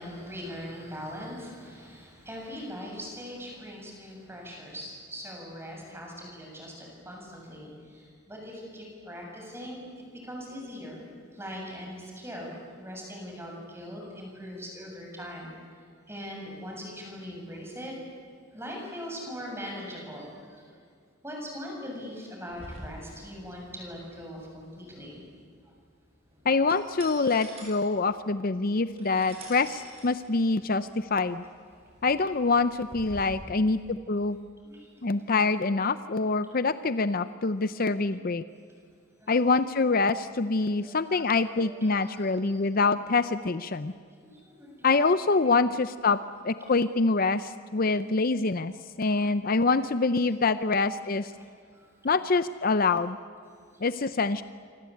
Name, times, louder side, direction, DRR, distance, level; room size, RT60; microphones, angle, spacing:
voice 1, 0.0-9.8 10.2-11.1 11.3-15.5 16.1-18.0 18.5-20.7 21.2-25.2 33.3-34.0 34.6-35.5 37.6-37.8 38.0-38.2 39.2-39.5 40.7-42.6 44.2-44.9 45.6-45.7 47.8-48.2 49.0-49.2 49.7-49.8 50.7-50.8 51.3-51.4 51.7-52.1 53.7-53.8, equal, 10° right, 0 dB, 7.5 m, -41 dB
sound 1, 22.5-33.4, right 1 dB, 30° right, 7.7 m, -48 dB
voice 2, 26.5-31.4 32.0-34.4 35.0-38.4 39.3-43.9 44.8-46.2 46.4-48.7 49.0-51.3 52.0-53.2 53.8-54.4, left 3 dB, 45° left, 13 dB, 0.6 m, -25 dB
27.5 x 25.0 x 8.6 m, 2.2 s
head